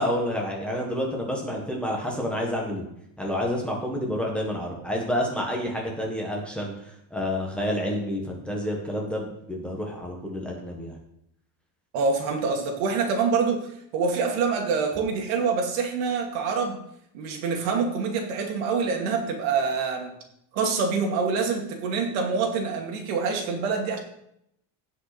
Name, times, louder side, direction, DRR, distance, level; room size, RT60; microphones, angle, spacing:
voice 1, 0.0-2.8 3.2-6.7 7.1-11.0, equal, 5° left, -1 dB, 1.4 m, -29 dB
voice 2, 11.9-16.8 17.1-20.1 20.5-24.0, right 5 dB, 75° right, 2 dB, 2.4 m, -26 dB
16.5 x 5.6 x 4.2 m, 0.75 s
cardioid pair, 175°, 41 cm